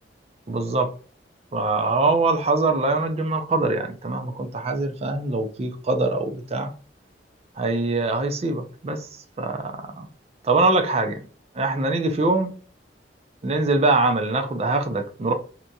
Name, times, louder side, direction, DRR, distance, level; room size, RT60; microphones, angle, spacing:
voice 1, 0.5-0.9 1.5-6.7 7.6-9.1 9.4-10.1 10.4-11.2 11.5-12.5 13.4-15.3, right 3 dB, 35° right, 0.4 m, -23 dB
2.9 x 2.6 x 2.2 m
head